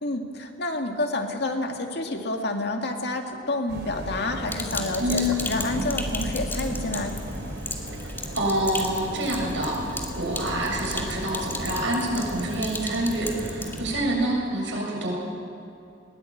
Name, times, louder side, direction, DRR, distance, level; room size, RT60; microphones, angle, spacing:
voice 1, 0.0-7.2, left 2 dB, 60° left, 3 dB, 2.2 m, -29 dB
sound 1, 3.7-14.0, equal, 60° right, 5.2 m, -35 dB
Sink (filling or washing), 4.4-13.8, left 2 dB, 10° left, 2.4 m, -36 dB
voice 2, 5.0-5.4 8.3-15.1, right 1 dB, 85° right, -1 dB, 7.1 m, -27 dB
21.0 x 19.5 x 8.7 m, 2.6 s
head